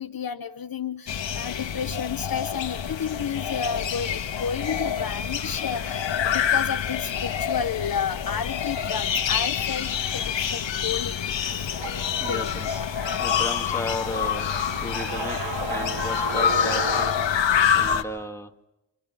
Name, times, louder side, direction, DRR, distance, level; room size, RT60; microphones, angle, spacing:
voice 1, 0.0-11.2 11.5-11.7 12.3-12.5, left 7 dB, 50° left, 8 dB, 1.1 m, -31 dB
sound 1, 1.1-18.0, left 8 dB, 75° left, 1.6 m, -27 dB
sound 2, 11.5-17.1, right 3 dB, 75° right, 4.0 m, -34 dB
voice 2, 12.2-17.1 17.7-18.5, left 2 dB, 5° left, 4 dB, 2.0 m, -35 dB
28.5 x 27.5 x 5.6 m, 0.93 s
cardioid pair, 50°, 45 cm